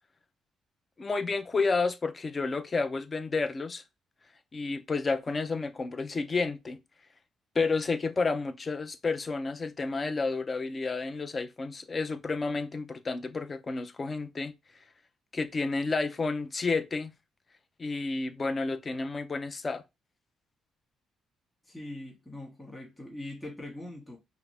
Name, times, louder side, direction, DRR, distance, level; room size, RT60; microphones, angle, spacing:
voice 1, 1.0-3.8 4.5-6.8 7.6-14.5 15.3-17.1 17.8-19.8, left 3 dB, 30° left, 0.5 m, -30 dB
voice 2, 21.7-24.2, left 1 dB, 10° left, 1.6 m, -42 dB
5.6 x 2.0 x 3.4 m
cardioid pair, 90°, 0 cm